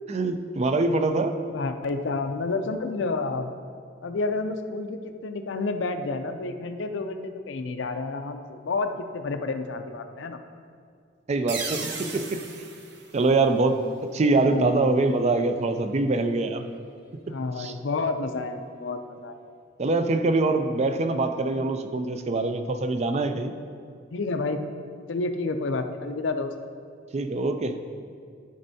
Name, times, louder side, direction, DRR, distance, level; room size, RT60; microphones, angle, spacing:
voice 1, 0.1-1.4 11.3-12.5 13.1-16.7 17.3-17.7 19.8-23.5 27.1-27.8, right 3 dB, 35° right, 8 dB, 0.4 m, -24 dB
voice 2, 1.5-3.5 4.0-10.4 14.5-15.1 17.2-19.4 24.1-24.6 25.1-26.5, left 3 dB, 70° left, 7 dB, 0.5 m, -30 dB
sound 1, 11.5-14.0, right 4 dB, 60° right, 0.7 m, -37 dB
12.0 x 5.2 x 2.7 m, 2.2 s
head